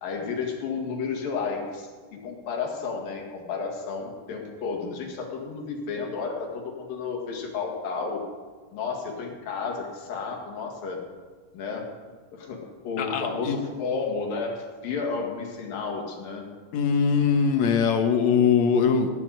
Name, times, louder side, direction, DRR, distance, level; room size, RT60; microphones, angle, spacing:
voice 1, 0.0-8.2 8.7-11.0 11.5-11.9 12.3-16.5, left 5 dB, 80° left, 1 dB, 3.7 m, -32 dB
voice 2, 13.0-13.6 16.7-19.1, left 6 dB, 60° left, 5 dB, 2.2 m, -22 dB
17.0 x 9.3 x 6.5 m, 1.5 s
omnidirectional pair, 4.0 m